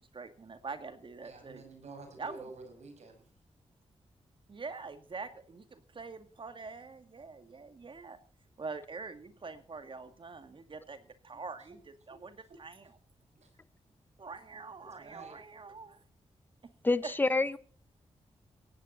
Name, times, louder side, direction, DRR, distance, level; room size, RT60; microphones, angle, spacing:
voice 1, 0.1-1.6 2.2-2.4 4.5-8.2 8.6-11.8 12.1-12.9 14.2-16.0 17.0-17.1, right 4 dB, 45° right, 9 dB, 2.3 m, -44 dB
voice 2, 1.2-3.3 11.3-11.4 12.1-12.2 13.4-13.5 14.8-15.4, right 3 dB, 75° right, 5 dB, 6.4 m, -50 dB
voice 3, 16.8-17.6, left 3 dB, 15° left, 16 dB, 0.9 m, -27 dB
17.5 x 15.0 x 4.1 m, 0.43 s
cardioid pair, 90°, 12 cm